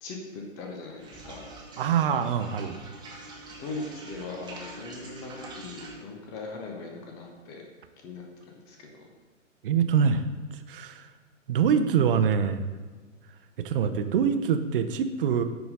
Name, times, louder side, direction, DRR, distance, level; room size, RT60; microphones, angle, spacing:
voice 1, 0.0-1.5 3.6-7.7 8.0-8.9, left 3 dB, 10° left, 1 dB, 0.4 m, -40 dB
sound 1, 1.0-6.0, right 2 dB, 10° right, 1.2 m, -44 dB
voice 2, 1.8-2.8 9.6-10.2 10.7-11.0 11.5-12.6 13.6-15.4, right 7 dB, 45° right, 9 dB, 0.7 m, -24 dB
9.4 x 4.0 x 5.1 m, 1.4 s
figure-of-eight pair, 120°, 39 cm